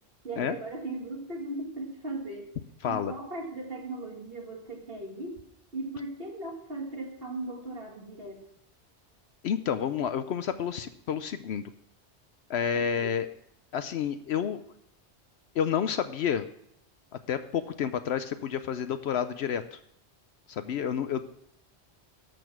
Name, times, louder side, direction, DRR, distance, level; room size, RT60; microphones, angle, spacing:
voice 1, 0.2-2.5 2.9-5.4 5.7-8.4 12.7-13.1, right 2 dB, 55° right, 0 dB, 2.2 m, -38 dB
voice 2, 2.8-3.1 9.4-11.6 12.5-13.3 13.7-14.6 15.5-16.5 17.3-19.8 20.5-21.2, left 8 dB, 75° left, 11 dB, 0.9 m, -29 dB
12.5 x 6.9 x 6.1 m, 0.76 s
omnidirectional pair, 1.1 m